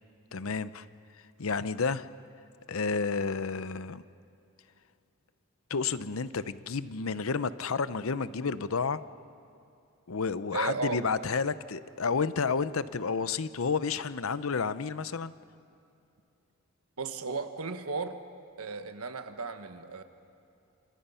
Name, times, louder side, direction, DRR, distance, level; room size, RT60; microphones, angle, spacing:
voice 1, 0.3-0.8 1.4-2.1 2.7-4.0 5.7-9.0 10.1-15.3, left 5 dB, 70° left, 14 dB, 0.7 m, -31 dB
voice 2, 10.5-11.0 17.0-18.2 18.6-20.0, right 4 dB, 85° right, 8 dB, 1.4 m, -35 dB
29.0 x 27.5 x 5.7 m, 2.6 s
head